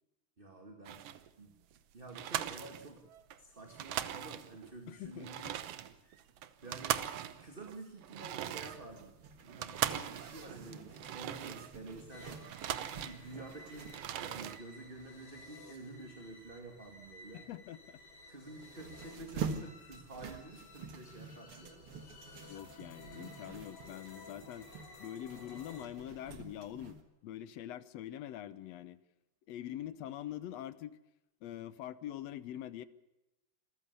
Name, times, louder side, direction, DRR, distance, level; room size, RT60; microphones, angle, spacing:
voice 1, 0.4-1.1 1.4-1.5 1.9-3.0 3.4-5.5 6.0-6.2 6.6-7.0 7.4-9.1 9.4-17.4 18.3-21.9, right 2 dB, 20° right, 3 dB, 1.9 m, -50 dB
sound 1, 0.9-1.3 1.7-1.8 2.1-3.4 3.6-4.7 5.1-12.0 12.3-13.5 13.8-14.6, right 11 dB, 65° right, 1.8 m, -40 dB
voice 2, 4.9-5.5 17.3-18.0 22.4-24.7 25.0-29.0 29.5-31.0 31.4-32.9, left 12 dB, 70° left, 16 dB, 1.8 m, -44 dB
Zipper (clothing), 8.6-27.0, right 5 dB, 50° right, 2.2 m, -48 dB
sound 2, 12.1-25.9, left 3 dB, 50° left, 3.2 m, -56 dB
27.0 x 14.0 x 6.8 m, 0.97 s
omnidirectional pair, 3.5 m